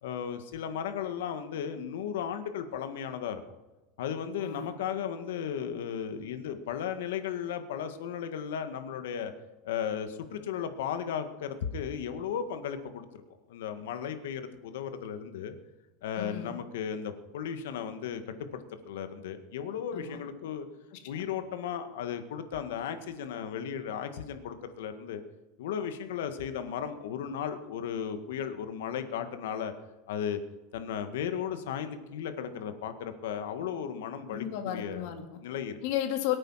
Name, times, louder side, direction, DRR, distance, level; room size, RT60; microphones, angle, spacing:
voice 1, 0.0-3.4 4.0-9.3 9.6-13.2 13.5-15.6 16.0-18.2 18.5-20.7 21.0-25.2 25.6-29.7 30.1-30.4 30.7-35.1 35.4-35.8, left 8 dB, 85° left, 8 dB, 1.8 m, -35 dB
voice 2, 4.4-4.8 16.1-16.6 19.9-20.2 20.9-21.3 34.3-35.4 35.8-36.3, left 11 dB, 55° left, 5 dB, 2.3 m, -34 dB
22.5 x 9.0 x 5.8 m, 1.1 s
supercardioid pair, 170°, 0 cm